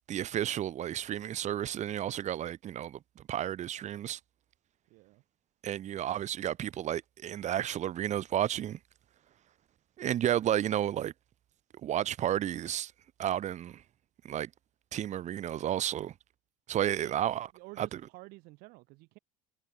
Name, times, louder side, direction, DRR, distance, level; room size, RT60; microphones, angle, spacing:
voice 1, 0.1-4.2 5.6-8.8 10.0-11.1 11.8-12.9 13.2-13.8 14.2-14.5 14.9-16.1 16.7-17.5 17.8-17.9, right 11 dB, 45° right, 1.9 m, -32 dB
voice 2, 4.9-5.2 16.9-17.1 17.5-19.2, right 24 dB, 60° right, 2.9 m, -51 dB
hypercardioid pair, 80°, 17 cm